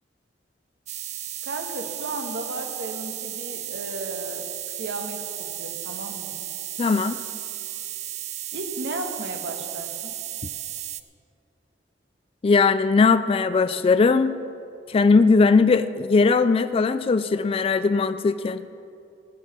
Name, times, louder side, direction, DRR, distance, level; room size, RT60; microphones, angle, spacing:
sound 1, 0.9-11.0, right 12 dB, 40° right, 0.4 m, -34 dB
voice 1, 1.4-4.5 4.8-6.3 8.5-10.1, right 2 dB, 75° right, 4 dB, 1.5 m, -34 dB
voice 2, 6.8-7.2 12.4-14.4 14.9-18.7, left 4 dB, 30° left, 11 dB, 0.3 m, -19 dB
17.5 x 6.4 x 7.3 m, 2.6 s
head